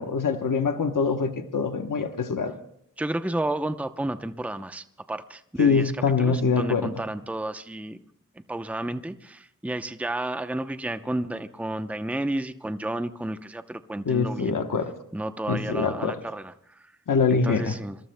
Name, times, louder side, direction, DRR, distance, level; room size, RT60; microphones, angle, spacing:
voice 1, 0.0-2.5 5.6-6.9 14.1-14.9 15.5-16.2 17.1-17.7, left 5 dB, 85° left, 1.1 m, -24 dB
voice 2, 3.0-5.9 6.2-8.0 8.5-14.6 15.1-16.9 17.4-18.0, right 1 dB, 5° right, 0.8 m, -31 dB
27.0 x 22.0 x 2.2 m
wide cardioid pair, 70°, 31 cm